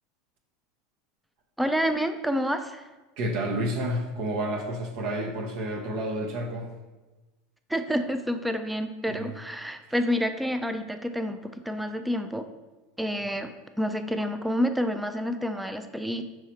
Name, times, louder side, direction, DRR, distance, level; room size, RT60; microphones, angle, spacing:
voice 1, 1.6-2.9 7.7-12.4 13.0-16.2, equal, 5° right, 8 dB, 0.4 m, -28 dB
voice 2, 3.2-6.7 9.1-9.4, right 1 dB, 60° right, 1 dB, 0.7 m, -30 dB
5.5 x 3.1 x 3.1 m, 1.2 s
hypercardioid pair, 85°, 0 cm